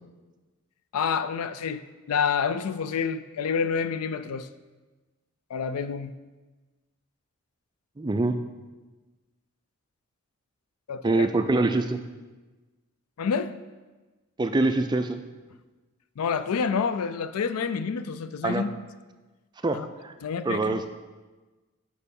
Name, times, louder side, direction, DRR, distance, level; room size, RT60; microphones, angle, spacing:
voice 1, 0.9-1.8 2.1-4.5 5.5-6.1 10.9-11.3 13.2-13.5 16.2-18.7 19.7-19.9 20.2-20.9, left 6 dB, 85° left, 12 dB, 0.4 m, -28 dB
voice 2, 8.0-8.4 11.0-12.0 14.4-15.2 18.4-18.6 19.6-20.1 20.4-20.9, right 2 dB, 20° right, 7 dB, 0.3 m, -24 dB
6.6 x 4.9 x 5.3 m, 1.2 s
head